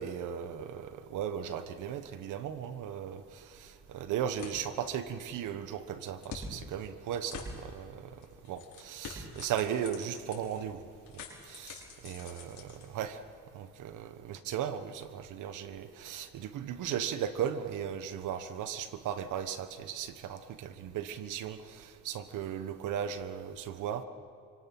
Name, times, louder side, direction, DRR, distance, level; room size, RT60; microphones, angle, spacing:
voice 1, 0.0-8.1 8.5-10.8 11.1-13.2 13.5-24.0, right 9 dB, 85° right, 11 dB, 1.4 m, -37 dB
sound 1, 3.1-13.4, left 3 dB, 65° left, 5.4 m, -48 dB
25.0 x 25.0 x 6.1 m, 2.3 s
cardioid pair, 90°, 30 cm